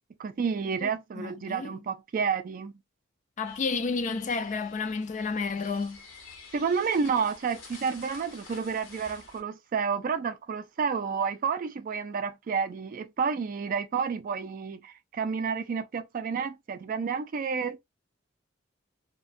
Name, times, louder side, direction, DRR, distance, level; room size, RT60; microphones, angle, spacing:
voice 1, 0.2-2.7 6.5-17.8, right 6 dB, 45° right, 0.3 m, -30 dB
voice 2, 1.2-1.7 3.4-6.0, left 4 dB, 40° left, 0.3 m, -31 dB
sound 1, 3.4-9.4, left 4 dB, 75° left, 0.9 m, -49 dB
2.5 x 2.2 x 2.4 m
head